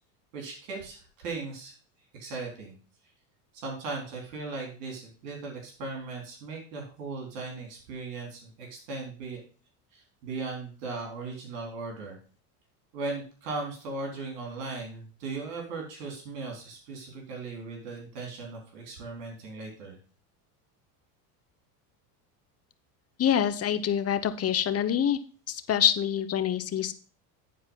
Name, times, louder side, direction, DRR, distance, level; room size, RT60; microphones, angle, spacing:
voice 1, 0.3-1.7 2.2-2.7 3.5-9.4 9.9-12.2 12.9-20.0, right 3 dB, 80° right, 0 dB, 4.1 m, -38 dB
voice 2, 23.2-25.2 25.5-26.9, left 9 dB, 30° left, 11 dB, 0.9 m, -26 dB
10.0 x 4.7 x 5.6 m, 0.39 s
supercardioid pair, 105°, 46 cm